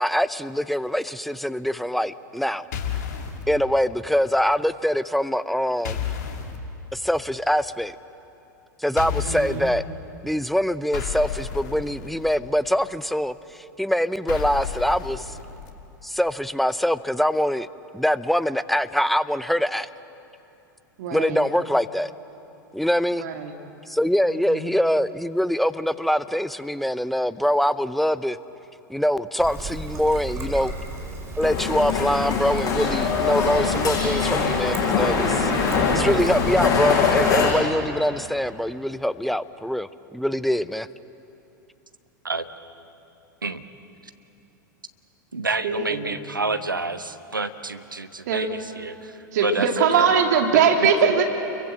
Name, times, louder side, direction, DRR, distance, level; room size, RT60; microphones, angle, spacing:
voice 1, 0.0-2.7 3.5-6.0 6.9-7.9 8.8-9.8 10.2-13.3 13.8-15.4 16.0-17.7 17.9-19.9 21.1-22.1 22.7-23.3 23.9-28.4 28.9-30.7 31.4-35.5 35.9-39.9 40.1-40.9, equal, ahead, 16 dB, 0.6 m, -23 dB
sound 1, 2.7-3.4 5.8-6.6 9.0-9.7 10.9-12.3 14.3-15.7, left 7 dB, 55° left, 2.6 m, -31 dB
voice 2, 9.0-9.7 21.0-21.4 23.2-23.5 24.5-24.7 45.6-46.2 48.3-48.5 49.3-51.2, right 6 dB, 60° right, 4 dB, 2.4 m, -22 dB
Trickle dribble, 29.4-36.5, right 2 dB, 25° right, 4.8 m, -35 dB
sound 2, 31.4-37.5, left 5 dB, 35° left, 6.9 m, -22 dB
voice 3, 45.3-50.2, right 3 dB, 85° right, 10 dB, 1.1 m, -29 dB
29.5 x 23.0 x 7.7 m, 2.8 s
figure-of-eight pair, 90°, 11 cm